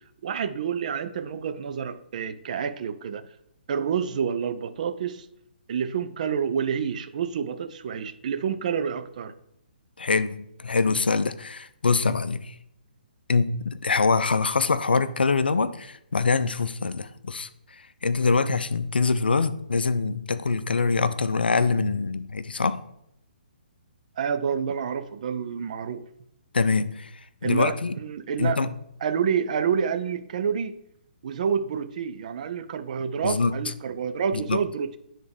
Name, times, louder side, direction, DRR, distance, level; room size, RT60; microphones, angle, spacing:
voice 1, 0.2-3.2 3.7-5.3 5.7-9.3 24.2-26.0 27.4-28.6 29.0-30.8 31.2-35.0, right 7 dB, 45° right, 0.5 m, -28 dB
voice 2, 10.0-12.6 13.3-17.5 18.0-22.8 26.5-27.1 27.4-27.9 28.4-28.7 33.2-33.6 34.3-34.6, left 4 dB, 75° left, 0.4 m, -24 dB
9.5 x 3.6 x 3.5 m
figure-of-eight pair, 135°, 5 cm